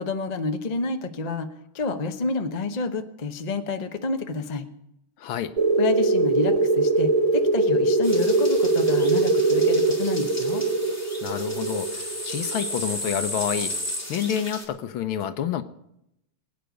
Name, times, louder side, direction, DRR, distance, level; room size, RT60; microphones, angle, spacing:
voice 1, 0.0-1.5 1.7-4.7 5.8-10.6, left 3 dB, 40° left, 6 dB, 0.5 m, -29 dB
voice 2, 5.2-5.5 11.2-13.8 14.1-15.6, left 9 dB, 75° left, 11 dB, 1.6 m, -28 dB
sound 1, 5.6-13.9, right 3 dB, 45° right, 0.4 m, -22 dB
sound 2, 8.0-14.6, left 1 dB, 5° left, 2.0 m, -34 dB
22.5 x 8.9 x 5.2 m, 0.82 s
omnidirectional pair, 2.3 m